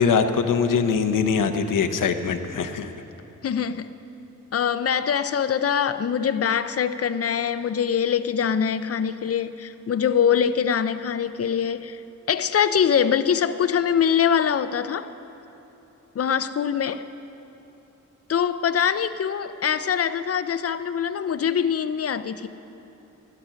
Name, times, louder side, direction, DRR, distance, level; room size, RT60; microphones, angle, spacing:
voice 1, 0.0-2.9, left 6 dB, 85° left, 8 dB, 0.8 m, -22 dB
voice 2, 3.4-4.0 4.5-12.0 12.3-15.1 16.2-17.0 18.3-22.5, left 8 dB, 50° left, 12 dB, 0.5 m, -23 dB
14.0 x 11.5 x 5.8 m, 2.9 s
wide cardioid pair, 105°, 31 cm